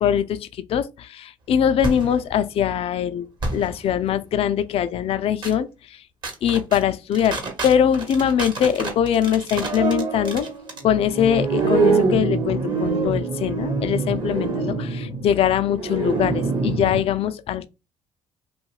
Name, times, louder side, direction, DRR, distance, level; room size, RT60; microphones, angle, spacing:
voice 1, 0.0-3.3 3.5-6.0 6.4-10.5 10.8-17.7, left 9 dB, 55° left, 0.4 m, -22 dB
sound 1, 1.8-2.1 3.4-3.7 5.4-5.5 6.2-6.8 7.1-17.0, right 4 dB, 40° right, 1.0 m, -25 dB
2.6 x 2.3 x 3.1 m
supercardioid pair, 80°, 11 cm